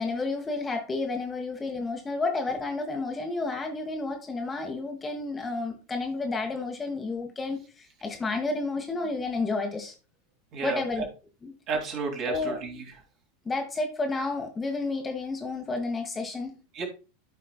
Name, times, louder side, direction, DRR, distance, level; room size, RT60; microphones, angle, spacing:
voice 1, 0.0-9.9 10.6-11.0 11.4-11.5 12.3-12.6 13.4-16.6, left 3 dB, 15° left, 3 dB, 1.4 m, -31 dB
voice 2, 10.5-11.1 11.7-12.9 16.7-16.8, right 4 dB, 40° right, 2 dB, 2.5 m, -32 dB
13.0 x 5.0 x 2.3 m, 0.33 s
figure-of-eight pair, 85°, 0 cm